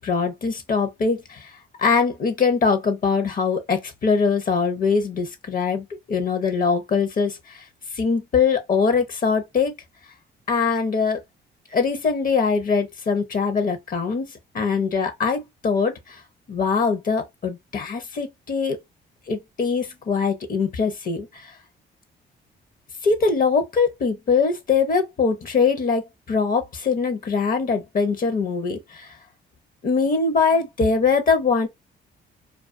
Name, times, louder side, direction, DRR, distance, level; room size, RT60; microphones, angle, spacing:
voice 1, 0.0-1.5 1.8-7.6 7.9-9.7 10.5-11.2 11.7-14.3 14.5-16.2 16.5-18.8 19.3-21.5 23.0-29.1 29.8-31.7, left 5 dB, 45° left, 0.6 m, -22 dB
2.3 x 2.2 x 2.4 m
cardioid pair, 90°, 20 cm